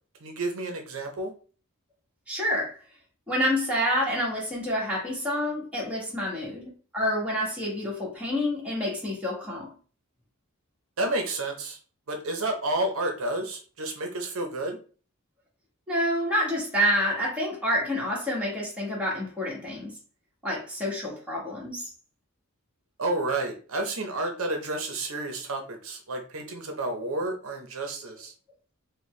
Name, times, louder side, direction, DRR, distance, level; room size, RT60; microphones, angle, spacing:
voice 1, 0.2-1.3 11.0-11.8 12.1-14.8 23.0-28.3, right 2 dB, 70° right, 3 dB, 0.7 m, -30 dB
voice 2, 2.3-2.7 3.3-9.7 15.9-19.9 20.4-21.8, equal, 5° right, -5 dB, 1.4 m, -28 dB
4.2 x 2.2 x 3.1 m, 0.39 s
head